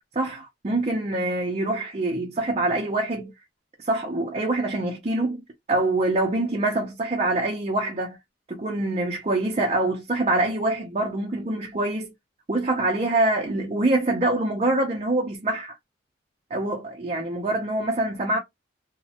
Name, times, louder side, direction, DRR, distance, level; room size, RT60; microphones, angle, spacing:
voice 1, 0.1-3.3 3.8-5.4 5.7-8.2 8.5-12.1 12.5-15.8 16.5-18.4, right 2 dB, 35° right, 0.5 m, -25 dB
3.0 x 2.1 x 2.7 m
head